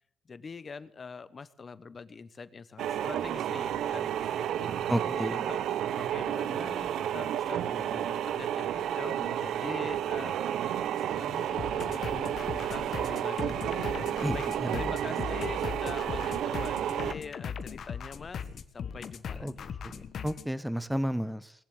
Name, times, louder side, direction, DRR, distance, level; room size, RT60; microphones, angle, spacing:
voice 1, 0.2-10.4 10.8-14.5 14.7-18.4 18.7-19.7, left 5 dB, 35° left, 16 dB, 1.0 m, -44 dB
sound 1, 2.8-17.1, right 10 dB, 75° right, 0.7 m, -31 dB
voice 2, 4.9-5.4 14.2-14.9 19.4-19.5 19.8-21.5, equal, ahead, 15 dB, 1.0 m, -32 dB
sound 2, 11.6-20.5, left 7 dB, 60° left, 1.3 m, -39 dB
20.0 x 7.4 x 8.7 m, 0.68 s
cardioid pair, 90°, 0 cm